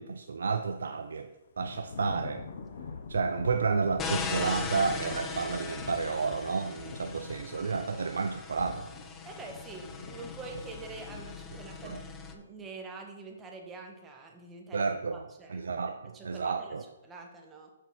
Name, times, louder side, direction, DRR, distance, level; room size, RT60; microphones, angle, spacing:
voice 1, 0.0-2.5 3.1-8.9 11.8-12.0 14.7-15.2 15.5-16.8, right 5 dB, 75° right, 7 dB, 0.4 m, -31 dB
Thunder / Rain, 1.6-12.1, left 5 dB, 55° left, 0.8 m, -44 dB
sound 1, 4.0-12.3, left 5 dB, 15° left, 0.6 m, -40 dB
voice 2, 9.2-12.0 12.3-15.6 16.1-16.8 17.0-17.7, right 4 dB, 15° right, 2 dB, 1.1 m, -45 dB
6.5 x 5.5 x 4.2 m, 1.0 s
hypercardioid pair, 135°, 0 cm